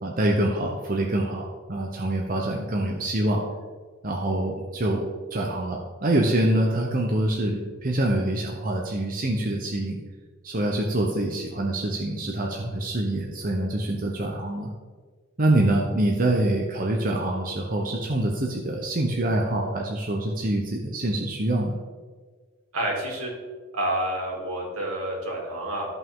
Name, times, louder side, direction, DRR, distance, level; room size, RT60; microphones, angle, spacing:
voice 1, 0.0-3.4 4.0-10.0 10.4-14.7 15.4-21.7, right 1 dB, 40° right, 0 dB, 0.8 m, -25 dB
voice 2, 22.7-23.3 23.7-25.9, right 1 dB, 85° right, -2 dB, 2.7 m, -28 dB
13.5 x 5.7 x 3.7 m, 1.5 s
head